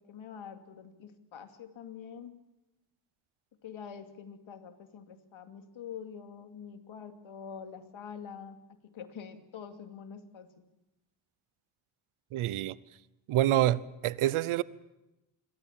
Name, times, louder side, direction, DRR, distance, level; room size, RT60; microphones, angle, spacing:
voice 1, 0.0-2.3 3.6-8.6 8.9-10.5, left 7 dB, 75° left, 2.6 m, -45 dB
voice 2, 12.3-12.8 13.3-14.6, right 13 dB, 90° right, 0.9 m, -27 dB
28.0 x 22.5 x 7.5 m
supercardioid pair, 55°, 48 cm